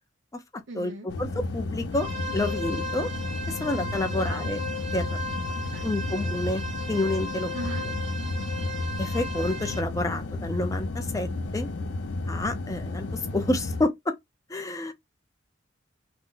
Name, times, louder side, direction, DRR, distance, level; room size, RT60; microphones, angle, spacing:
voice 1, 0.7-1.1 4.1-4.5 5.7-6.0 7.5-7.9 14.6-14.9, right 2 dB, 90° right, 0.7 m, -40 dB
sound 1, 1.1-13.8, left 2 dB, 70° left, 0.5 m, -32 dB
voice 2, 1.2-3.1 3.5-4.6 4.9-5.2 5.8-7.5 9.0-11.7 12.3-14.1 14.5-14.9, left 2 dB, 15° left, 0.5 m, -29 dB
sound 2, 1.9-9.8, left 1 dB, 35° right, 0.6 m, -36 dB
2.5 x 2.1 x 3.7 m
head